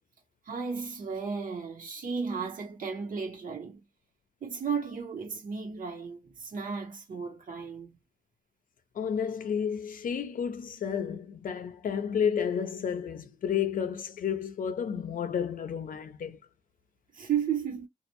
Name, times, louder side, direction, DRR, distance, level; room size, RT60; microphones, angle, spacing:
voice 1, 0.5-3.8 4.4-8.0 17.1-17.9, right 6 dB, 75° right, 1.0 m, -34 dB
voice 2, 8.9-16.4, left 7 dB, 80° left, 0.5 m, -31 dB
2.4 x 2.1 x 2.9 m
wide cardioid pair, 90°, 14 cm